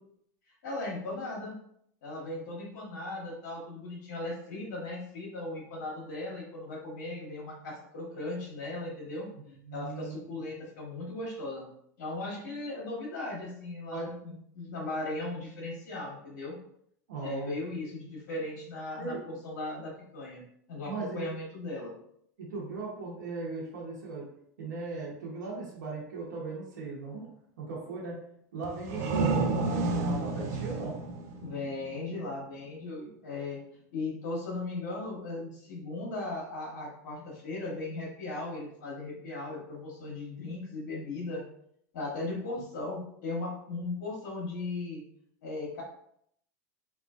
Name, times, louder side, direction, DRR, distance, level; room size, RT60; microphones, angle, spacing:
voice 1, 0.6-1.6 2.0-9.3 9.7-11.7 12.0-16.6 17.2-20.4 20.7-21.9 31.4-33.6 33.9-41.4 41.9-45.0 45.4-45.8, left 2 dB, 70° left, -4 dB, 1.3 m, -37 dB
voice 2, 9.7-10.2 12.4-12.6 13.9-14.1 17.1-17.6 19.0-19.2 20.8-21.3 22.4-24.3 24.6-27.3 27.6-28.1 28.5-30.9, right 3 dB, 85° right, -4 dB, 1.0 m, -38 dB
sound 1, 28.6-32.2, right 3 dB, 65° right, 0.6 m, -30 dB
3.1 x 2.4 x 2.4 m, 0.69 s
hypercardioid pair, 105°, 10 cm